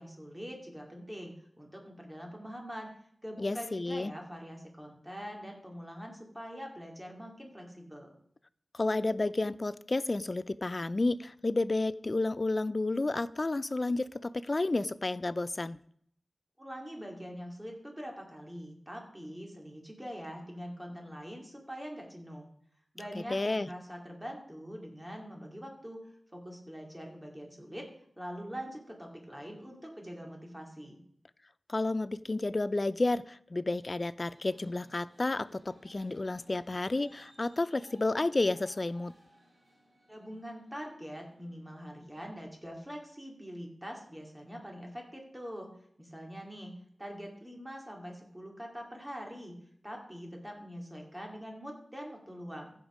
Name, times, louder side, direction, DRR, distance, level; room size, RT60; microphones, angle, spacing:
voice 1, 0.0-2.9 3.2-8.1 16.6-22.5 22.9-27.9 28.2-31.0 40.1-46.7 47.0-49.5 49.8-52.7, equal, 10° right, 1 dB, 2.4 m, -44 dB
voice 2, 3.4-4.1 8.7-15.8 23.3-23.7 31.7-39.1, left 2 dB, 35° left, 17 dB, 0.4 m, -31 dB
sound 1, 34.3-41.9, equal, 30° right, 3.6 m, -62 dB
15.0 x 5.3 x 5.0 m, 0.67 s
wide cardioid pair, 95°, 0 cm